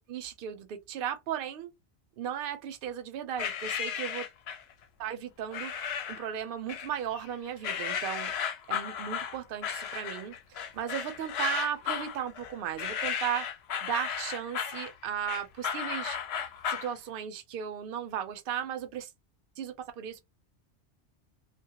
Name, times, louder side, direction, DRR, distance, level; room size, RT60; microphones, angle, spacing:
voice 1, 0.0-1.7 2.2-4.3 5.0-5.7 6.1-8.3 8.7-13.5 13.8-16.2 16.7-19.1 19.6-20.2, right 9 dB, 60° right, 0.7 m, -36 dB
sound 1, 3.4-4.7 5.5-6.3 6.7-7.3 7.6-16.9, left 8 dB, 70° left, 0.8 m, -34 dB
2.2 x 2.0 x 2.8 m
omnidirectional pair, 1.2 m